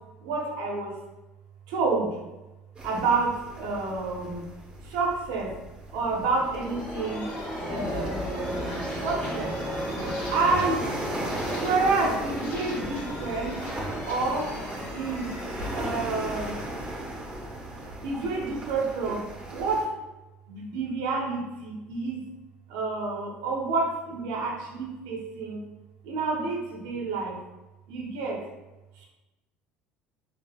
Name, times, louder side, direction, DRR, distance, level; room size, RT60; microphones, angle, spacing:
voice 1, 0.2-0.9 1.7-2.2 2.8-4.5 4.8-5.5 5.9-7.3 7.6-9.5 10.3-10.9 11.5-13.5 14.1-14.5 14.9-15.3 15.7-16.6 18.0-19.2 19.5-19.9 20.5-22.2 22.7-25.6 26.0-27.4 27.9-28.4 29.0-29.1, right 3 dB, 80° right, -1 dB, 0.7 m, -29 dB
sound 1, 2.7-19.8, right 1 dB, 25° right, 0.7 m, -37 dB
sound 2, 6.1-17.6, equal, 35° left, 1.0 m, -35 dB
3.5 x 2.4 x 2.2 m, 1.1 s
supercardioid pair, 90°, 4 cm